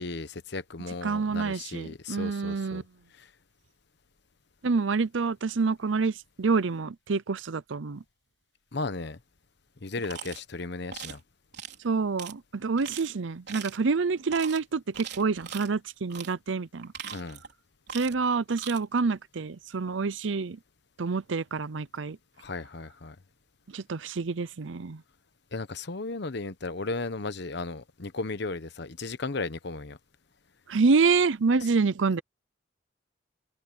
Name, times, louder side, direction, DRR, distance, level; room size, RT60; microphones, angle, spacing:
voice 1, 0.0-2.8 3.2-3.3 8.7-9.2 9.8-11.2 17.1-17.4 22.4-23.2 25.5-30.0, left 3 dB, 65° left, 1.1 m, -35 dB
voice 2, 1.0-2.8 4.6-8.0 11.8-16.9 17.9-20.6 21.0-22.2 23.7-25.0 30.7-32.2, right 4 dB, 80° right, 0.7 m, -27 dB
sound 1, 10.0-10.4 10.9-11.2 11.5-11.8 12.2-12.3 12.8-13.1 13.5-13.8 14.3-14.6 14.9-15.7 16.1-16.3 16.8-17.5 17.9-18.2 18.5-18.8, right 8 dB, 60° right, 4.1 m, -40 dB
head